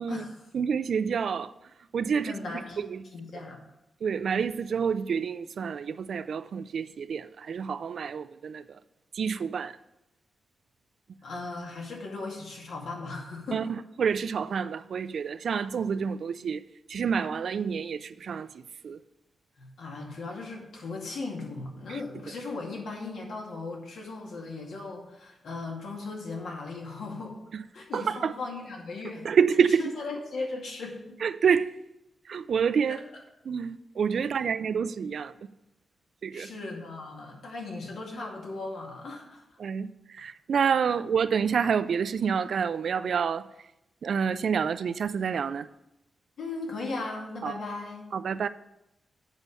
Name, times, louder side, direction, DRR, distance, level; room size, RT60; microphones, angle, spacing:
voice 1, 0.0-0.5 2.2-2.8 3.1-3.6 11.2-13.7 19.6-27.4 27.7-29.3 29.8-31.2 32.9-33.2 34.4-34.5 36.3-39.4 46.4-48.1, left 3 dB, 85° left, 2.2 m, -37 dB
voice 2, 0.5-1.5 1.9-2.3 2.8-3.0 4.0-8.6 9.1-9.7 13.5-13.6 14.0-16.6 16.9-19.0 27.5-27.6 27.9-28.3 29.2-29.8 31.2-31.7 32.3-33.0 33.5-35.3 36.2-36.5 39.6-39.9 40.1-43.5 44.0-45.7 47.4-47.5 48.1-48.5, right 6 dB, 65° right, 0.4 m, -28 dB
8.1 x 5.5 x 6.8 m
wide cardioid pair, 135°, 0 cm